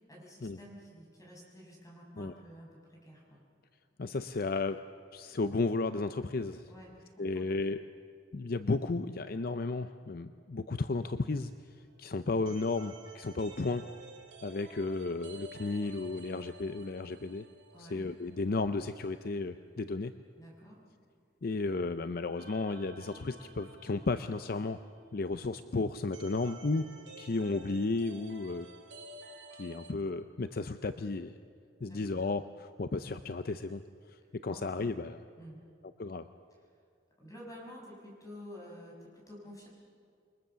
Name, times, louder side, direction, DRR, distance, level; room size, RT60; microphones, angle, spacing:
voice 1, 0.1-3.4 6.7-7.5 17.7-18.0 20.4-20.8 31.8-32.2 34.5-34.6 35.4-35.6 37.2-39.7, equal, 20° left, -2 dB, 6.5 m, -50 dB
voice 2, 4.0-4.9 5.1-6.7 7.2-7.9 8.3-11.5 12.0-13.9 14.4-17.5 17.8-20.1 21.4-24.8 25.1-26.9 27.2-28.7 29.6-31.4 31.8-33.8 34.1-35.2 36.0-36.3, left 3 dB, 55° left, 10 dB, 0.6 m, -33 dB
sound 1, 11.7-18.4 18.6-18.7 22.4-29.9, right 2 dB, 75° right, 2.6 m, -52 dB
28.5 x 22.5 x 6.9 m, 2.2 s
head